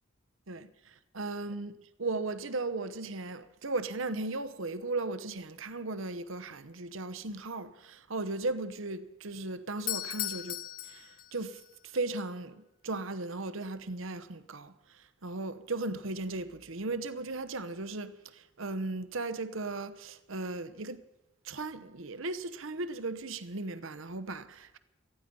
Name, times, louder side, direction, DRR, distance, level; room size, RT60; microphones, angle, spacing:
voice 1, 0.5-21.0 21.4-24.8, right 2 dB, 75° right, 1.0 m, -37 dB
Doorbell, 9.7-11.7, left 14 dB, 45° left, 0.5 m, -37 dB
18.5 x 14.5 x 5.4 m
head